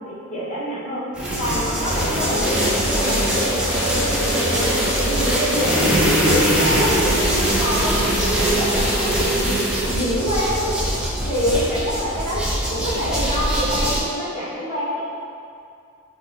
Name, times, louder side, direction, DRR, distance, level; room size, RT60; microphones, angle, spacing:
voice 1, 0.0-4.7 5.0-9.6 9.8-10.7 11.2-12.4 12.7-15.0, equal, 30° left, -9 dB, 1.3 m, -26 dB
sound 1, 1.2-14.0, equal, 5° right, 0.4 m, -21 dB
5.9 x 2.2 x 3.0 m, 2.4 s
head